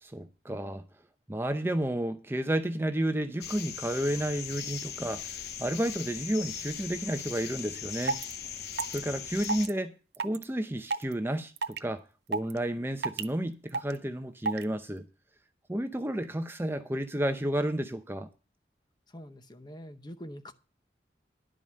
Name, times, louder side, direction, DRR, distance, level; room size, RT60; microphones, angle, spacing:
voice 1, 0.0-0.8 1.3-8.2 8.9-9.9 10.2-12.0 12.3-15.0 15.7-18.3, right 1 dB, 15° right, 0.6 m, -31 dB
sound 1, 3.4-9.7, left 8 dB, 60° left, 0.8 m, -39 dB
sound 2, 7.6-7.7 8.0-8.3 8.8-9.0 9.4-9.7 10.1-10.4 10.9-11.1 11.6-11.8 12.3-12.6 13.0-13.2 13.7-14.0 14.5-14.6, right 4 dB, 65° right, 0.6 m, -30 dB
voice 2, 19.1-20.5, equal, 25° left, 0.8 m, -44 dB
11.0 x 5.3 x 7.5 m
head